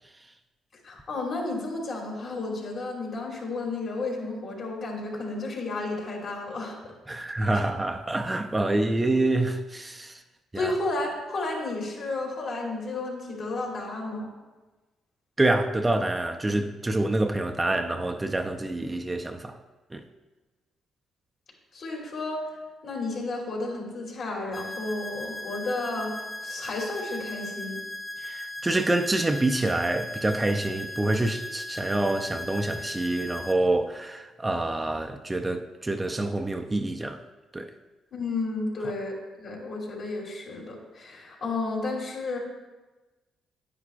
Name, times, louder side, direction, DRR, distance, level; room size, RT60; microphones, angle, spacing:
voice 1, 0.8-6.9 7.5-7.6 10.5-14.3 21.7-22.5 22.8-27.8 38.1-42.4, left 2 dB, 65° left, -3 dB, 2.8 m, -32 dB
voice 2, 7.1-10.2 10.5-10.7 15.4-19.6 19.9-20.0 28.2-37.2 37.5-37.7, right 2 dB, 15° right, 6 dB, 0.5 m, -27 dB
sound 1, 24.5-33.5, left 1 dB, 30° left, 0.9 m, -38 dB
9.9 x 9.5 x 2.4 m, 1.2 s
cardioid pair, 90°, 0 cm